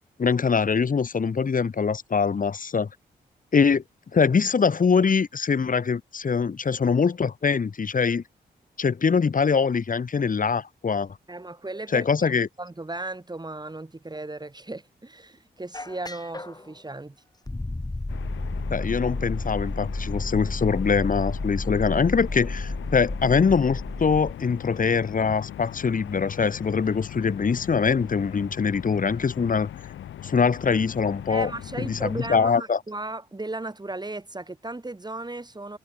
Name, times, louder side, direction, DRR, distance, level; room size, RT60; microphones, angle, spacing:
voice 1, 0.2-2.9 3.5-3.8 4.1-8.2 8.8-11.2 11.9-12.5 18.7-29.7 30.2-31.5 31.8-32.8, left 5 dB, 45° left, 1.1 m, -23 dB
voice 2, 11.3-12.1 12.6-17.2 31.3-35.8, right 2 dB, 20° right, 2.2 m, -36 dB
sound 1, 15.7-16.7 17.5-24.3, left 2 dB, 20° left, 2.4 m, -32 dB
sound 2, 18.1-32.4, left 11 dB, 80° left, 4.3 m, -40 dB
supercardioid pair, 40°, 20 cm